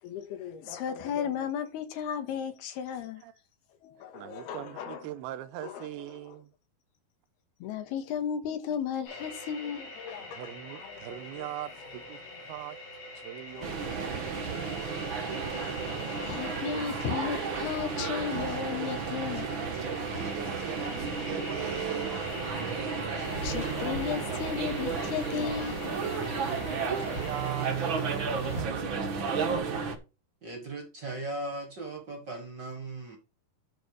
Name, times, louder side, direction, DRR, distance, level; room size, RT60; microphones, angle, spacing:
voice 1, 0.0-3.2 3.8-5.1 5.6-5.9 6.2-6.4 7.6-11.5 12.3-12.4 13.5-14.1 16.2-19.5 19.7-19.9 23.0-25.8 26.2-26.3, left 8 dB, 85° left, 3.4 m, -35 dB
voice 2, 4.0-6.5 10.3-12.2 12.5-12.8 13.2-15.3 19.8-22.5 26.5-29.5, right 13 dB, 90° right, 2.6 m, -41 dB
sound 1, 9.1-27.7, left 1 dB, 65° left, 6.4 m, -43 dB
sound 2, 13.6-30.0, right 5 dB, 65° right, 1.2 m, -33 dB
sound 3, 23.2-28.6, left 2 dB, 45° left, 3.3 m, -40 dB
voice 3, 30.4-33.2, right 2 dB, 50° right, 1.4 m, -38 dB
11.5 x 4.7 x 4.9 m
omnidirectional pair, 4.5 m